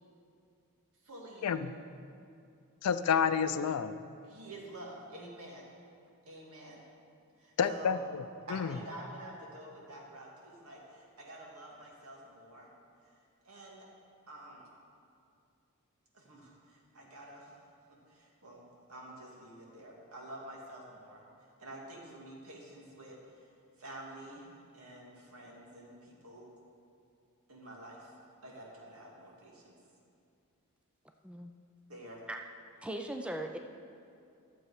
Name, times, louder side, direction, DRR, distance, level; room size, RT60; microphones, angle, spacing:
voice 1, 1.0-1.5 4.2-5.6 6.3-6.8 7.4-8.1 8.4-12.7 13.4-13.9 14.3-14.7 16.1-17.5 18.1-21.2 21.6-23.5 23.8-26.5 27.5-28.1 28.4-29.7 31.9-32.2, right 1 dB, 75° right, -2 dB, 2.0 m, -49 dB
voice 2, 2.8-3.9 7.6-8.2 8.5-8.7, left 7 dB, 90° left, 12 dB, 0.4 m, -29 dB
voice 3, 32.8-33.6, right 1 dB, 5° right, 4 dB, 0.3 m, -39 dB
12.0 x 7.6 x 4.9 m, 2.5 s
head